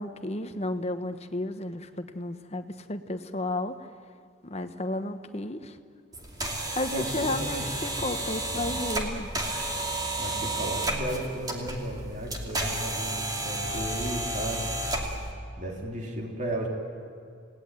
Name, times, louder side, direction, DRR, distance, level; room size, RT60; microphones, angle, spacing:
voice 1, 0.0-3.9 4.4-5.8 6.7-9.3, left 2 dB, 35° left, 8 dB, 1.2 m, -33 dB
sound 1, 6.1-15.3, right 1 dB, 20° right, 2.7 m, -32 dB
voice 2, 6.9-7.7 8.4-8.7 10.2-14.7 15.6-16.7, right 1 dB, 40° right, 0 dB, 3.5 m, -34 dB
29.0 x 18.5 x 9.1 m, 2.4 s
head